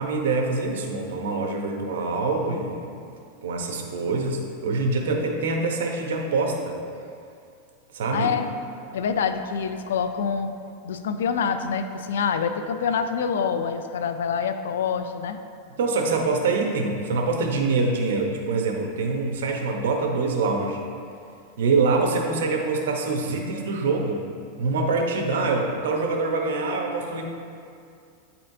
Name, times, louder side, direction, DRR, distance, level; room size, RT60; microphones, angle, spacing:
voice 1, 0.0-2.9 3.4-6.8 7.9-8.3 15.8-20.8 21.6-24.3 24.6-27.3, right 3 dB, 80° right, 1 dB, 0.9 m, -25 dB
voice 2, 8.1-8.5 8.9-10.5 10.8-15.4, left 6 dB, 85° left, 9 dB, 0.4 m, -26 dB
9.4 x 4.3 x 2.7 m, 2.4 s
supercardioid pair, 125°, 0 cm